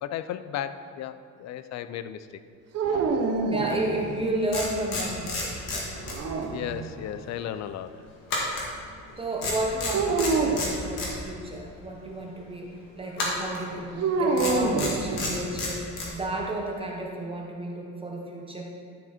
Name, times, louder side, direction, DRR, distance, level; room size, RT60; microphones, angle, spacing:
voice 1, 0.0-2.3 6.5-8.0, left 10 dB, 55° left, 12 dB, 0.5 m, -34 dB
sound 1, 2.7-4.3 6.0-7.1 9.9-10.7 14.0-15.6, right 3 dB, 50° right, 0.9 m, -27 dB
voice 2, 3.5-6.0 9.2-18.6, right 1 dB, 15° right, -1 dB, 0.9 m, -32 dB
sound 2, 4.0-4.1 4.5-6.6 6.8-7.0 8.3-9.1 9.4-11.1 13.1-13.6 14.3-16.1, left 3 dB, 90° left, 2.4 m, -31 dB
12.0 x 6.5 x 4.3 m, 2.2 s
cardioid pair, 175°, 32 cm